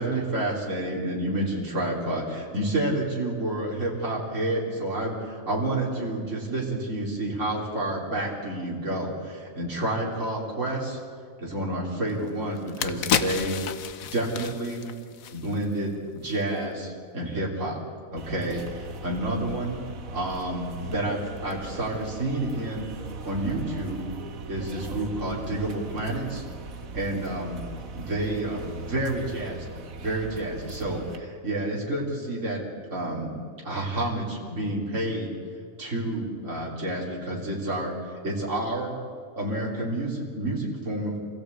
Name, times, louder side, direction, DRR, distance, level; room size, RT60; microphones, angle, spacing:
voice 1, 0.0-11.0 11.4-13.6 14.0-14.9 15.3-17.8 18.1-19.8 20.1-22.9 23.2-24.0 24.5-26.4 26.9-27.7 28.0-29.7 30.0-35.3 35.8-39.0 39.4-41.2, right 1 dB, 65° right, -3 dB, 4.0 m, -29 dB
sound 1, 12.1-12.2 12.6-15.8 16.2-16.3, left 8 dB, 85° left, 1.3 m, -30 dB
sound 2, 18.2-31.2, right 3 dB, 85° right, 1.8 m, -39 dB
27.0 x 16.0 x 8.4 m, 2.1 s
omnidirectional pair, 1.4 m